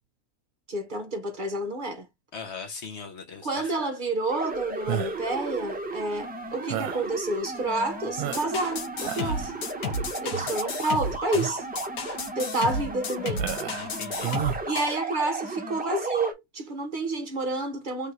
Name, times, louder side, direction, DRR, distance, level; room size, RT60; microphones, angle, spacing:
voice 1, 0.7-2.1 3.4-9.5 10.2-11.7 12.4-13.5 14.6-18.1, right 2 dB, 45° right, 0.7 m, -29 dB
voice 2, 2.3-3.7 9.1-9.5 13.8-14.3, left 5 dB, 50° left, 1.2 m, -40 dB
sound 1, 4.3-16.3, right 2 dB, 10° right, 0.6 m, -35 dB
sound 2, 4.9-5.3 6.7-7.1 7.7-7.8 8.2-8.7 9.0-9.5 10.3-10.7 11.3-11.6 12.2-12.3 13.3-13.9 14.2-14.6, right 11 dB, 75° right, 1.0 m, -32 dB
sound 3, 8.3-15.0, left 2 dB, 85° left, 1.4 m, -32 dB
3.4 x 2.6 x 4.5 m
omnidirectional pair, 1.5 m